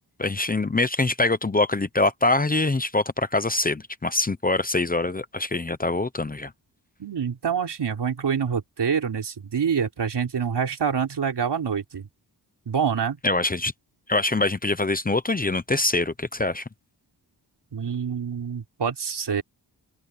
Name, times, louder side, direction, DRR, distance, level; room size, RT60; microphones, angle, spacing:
voice 1, 0.2-6.5 13.2-13.7 14.1-16.6, left 2 dB, 20° left, 0.8 m, -24 dB
voice 2, 7.0-12.1 12.7-13.2 17.7-19.4, right 7 dB, 75° right, 3.7 m, -26 dB
open air
wide cardioid pair, 120°, 41 cm